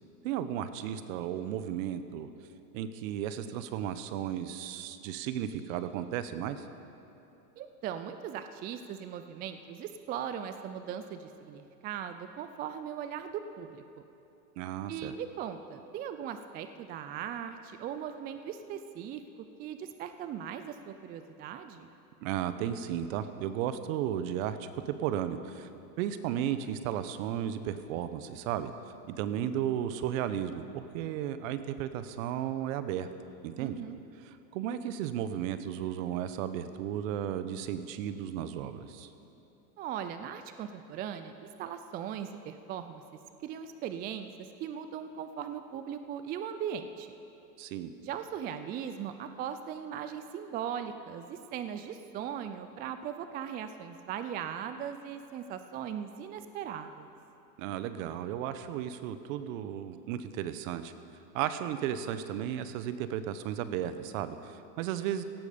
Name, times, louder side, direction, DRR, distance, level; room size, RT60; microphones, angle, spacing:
voice 1, 0.2-2.3 2.7-6.7 14.6-15.1 22.2-25.7 26.0-28.7 29.1-33.1 33.4-33.8 34.2-39.1 47.6-47.9 57.6-60.9 61.3-65.2, right 10 dB, 55° right, 11 dB, 1.1 m, -34 dB
voice 2, 7.6-14.0 14.9-19.2 19.6-21.9 33.6-34.0 39.8-41.3 41.6-43.0 43.4-44.3 44.6-47.1 48.0-57.1, right 9 dB, 20° right, 9 dB, 0.4 m, -39 dB
17.0 x 13.0 x 5.2 m, 3.0 s
hypercardioid pair, 110°, 47 cm